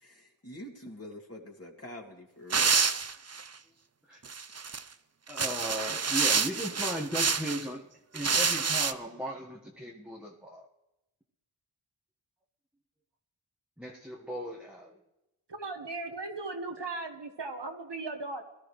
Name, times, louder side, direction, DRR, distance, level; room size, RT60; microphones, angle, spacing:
voice 1, 0.0-2.7, left 1 dB, 30° left, 0 dB, 2.6 m, -45 dB
sound 1, 2.5-3.5 4.2-4.8 5.3-7.6 8.1-8.9, right 5 dB, 30° right, 0.6 m, -28 dB
voice 2, 5.3-7.9 8.1-10.7 13.8-15.0, equal, ahead, -2 dB, 1.5 m, -37 dB
voice 3, 15.5-18.4, right 3 dB, 55° right, 4 dB, 1.6 m, -37 dB
22.0 x 13.0 x 3.3 m, 0.96 s
wide cardioid pair, 50°, 50 cm